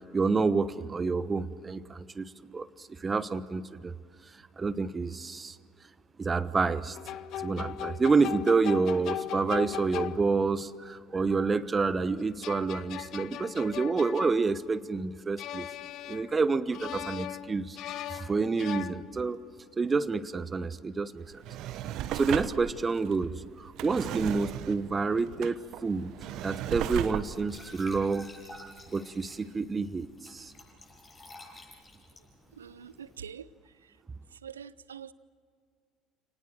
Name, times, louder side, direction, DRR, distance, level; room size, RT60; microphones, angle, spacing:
voice 1, 0.1-2.2 2.5-3.9 4.6-5.6 6.2-7.0 7.3-15.7 16.1-17.8 18.1-19.4 19.8-21.4 22.1-26.1 26.4-30.5, right 4 dB, 25° right, 15 dB, 1.1 m, -28 dB
sound 1, 6.9-10.6 12.2-14.9 15.4-16.5 16.7-19.4, left 12 dB, 50° left, 0.8 m, -39 dB
Drawer open or close, 21.2-28.9 29.4-29.5, right 11 dB, 55° right, 1.1 m, -37 dB
Glass / Trickle dribble / Fill (with liquid), 25.9-33.2, left 2 dB, 30° left, 7.9 m, -53 dB
voice 2, 32.6-33.5 34.4-35.1, right 8 dB, 80° right, 19 dB, 0.6 m, -44 dB
29.5 x 19.0 x 7.7 m, 2.2 s
figure-of-eight pair, 60°, 0 cm